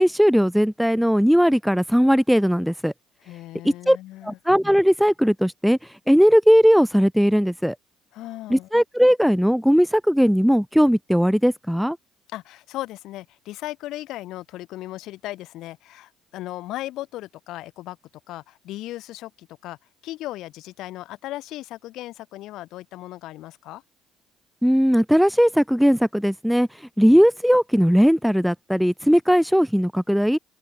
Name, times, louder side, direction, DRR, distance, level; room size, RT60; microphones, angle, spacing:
voice 1, 0.0-2.9 3.9-4.0 4.2-5.8 6.1-7.7 8.5-12.0 24.6-26.7 27.0-30.4, equal, ahead, 1.1 m, -18 dB
voice 2, 3.2-4.4 8.1-8.7 12.3-18.0 18.3-19.8 20.0-23.8, left 16 dB, 70° left, 7.9 m, -36 dB
open air
hypercardioid pair, 60°, 0 cm